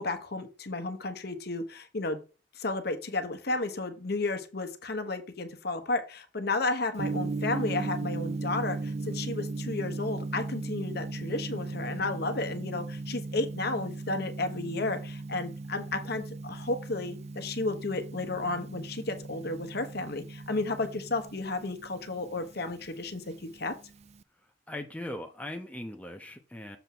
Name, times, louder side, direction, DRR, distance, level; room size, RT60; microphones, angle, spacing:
voice 1, 0.0-2.2 2.6-23.7, left 2 dB, 60° left, 8 dB, 1.1 m, -33 dB
Gong, 7.0-24.2, right 3 dB, 35° right, 0.4 m, -38 dB
voice 2, 24.4-26.8, left 1 dB, 10° left, 4 dB, 0.7 m, -40 dB
7.0 x 3.5 x 5.9 m, 0.33 s
head